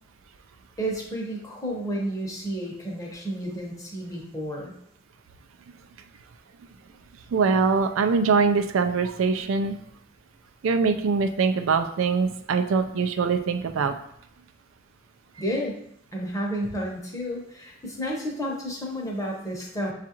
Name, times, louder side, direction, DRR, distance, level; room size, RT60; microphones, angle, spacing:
voice 1, 0.8-4.7 15.4-15.8 16.1-19.9, equal, 15° left, -2 dB, 0.8 m, -31 dB
voice 2, 7.3-9.8 10.6-13.9, right 5 dB, 80° right, 7 dB, 0.4 m, -23 dB
7.0 x 2.4 x 2.9 m, 0.70 s
head